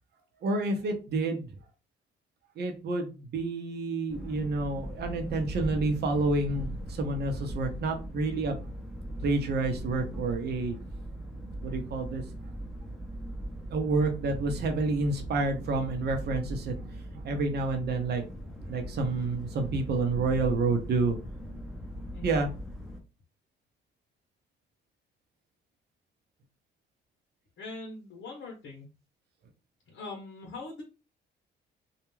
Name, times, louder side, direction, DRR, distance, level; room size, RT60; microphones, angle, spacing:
voice 1, 0.4-1.5 2.6-8.6 9.2-10.8 11.6-12.2 13.7-18.2 18.7-21.2 22.2-22.5, right 3 dB, 55° right, 5 dB, 0.7 m, -29 dB
sound 1, 4.1-23.0, equal, ahead, 0.7 m, -40 dB
voice 2, 27.6-28.9 29.9-30.8, left 3 dB, 75° left, 0 dB, 0.8 m, -42 dB
2.3 x 2.2 x 3.0 m, 0.31 s
cardioid pair, 90°, 20 cm